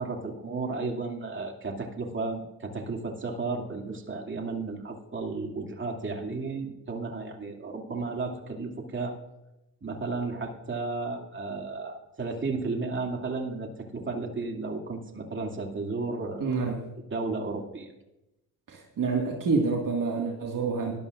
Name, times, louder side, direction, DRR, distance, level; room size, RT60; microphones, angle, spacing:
voice 1, 0.0-9.2 9.8-16.7 17.1-17.9, right 3 dB, 25° right, 2 dB, 2.4 m, -33 dB
voice 2, 16.4-16.8 18.7-20.9, right 4 dB, 45° right, 0 dB, 1.9 m, -27 dB
18.0 x 11.5 x 2.5 m, 0.93 s
supercardioid pair, 70°, 46 cm